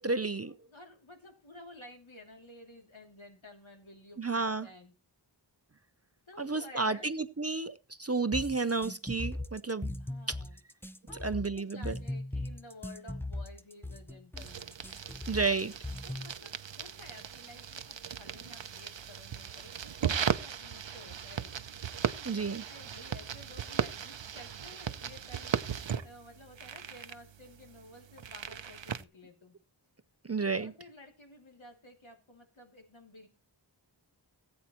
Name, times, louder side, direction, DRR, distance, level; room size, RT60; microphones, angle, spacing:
voice 1, 0.0-0.6 4.2-4.7 6.4-9.9 10.3-10.4 11.2-12.0 15.3-15.7 22.2-22.6 30.2-30.7, right 4 dB, 35° right, 0.6 m, -31 dB
voice 2, 0.7-4.9 6.3-7.1 10.0-10.6 11.1-14.8 16.0-29.5 30.5-33.3, left 2 dB, 85° left, 2.9 m, -53 dB
sound 1, 8.3-16.3, left 1 dB, 5° left, 0.6 m, -38 dB
sound 2, 14.4-29.0, right 8 dB, 70° right, 0.7 m, -37 dB
18.5 x 8.5 x 3.0 m
wide cardioid pair, 45°, 46 cm